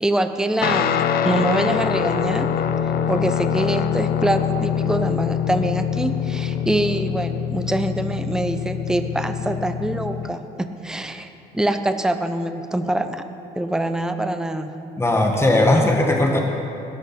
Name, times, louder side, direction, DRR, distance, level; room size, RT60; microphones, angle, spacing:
voice 1, 0.0-2.5 3.1-13.3 13.6-14.8, right 1 dB, 5° right, 8 dB, 0.8 m, -24 dB
Guitar, 0.6-10.4, left 8 dB, 65° left, 0.8 m, -24 dB
voice 2, 15.0-16.4, left 1 dB, 15° left, 1 dB, 1.5 m, -18 dB
20.0 x 11.5 x 4.3 m, 2.8 s
cardioid pair, 110°, 17 cm